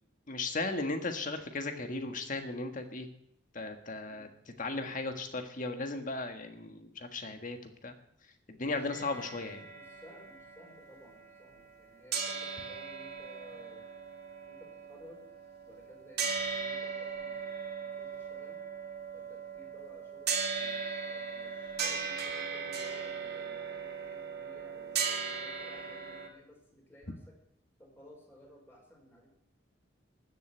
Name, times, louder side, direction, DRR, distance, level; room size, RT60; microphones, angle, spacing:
voice 1, 0.3-3.1 3.5-4.3 4.6-7.9 8.5-9.7, left 3 dB, 45° left, 6 dB, 1.6 m, -36 dB
voice 2, 8.6-9.2 9.7-13.8 14.5-15.2 15.6-18.6 19.1-20.3 20.6-27.3 27.8-29.3, equal, 15° left, -1 dB, 4.9 m, -56 dB
sound 1, 8.9-11.8 12.1-26.3, right 5 dB, 60° right, 2.3 m, -38 dB
13.0 x 7.9 x 8.9 m, 0.73 s
head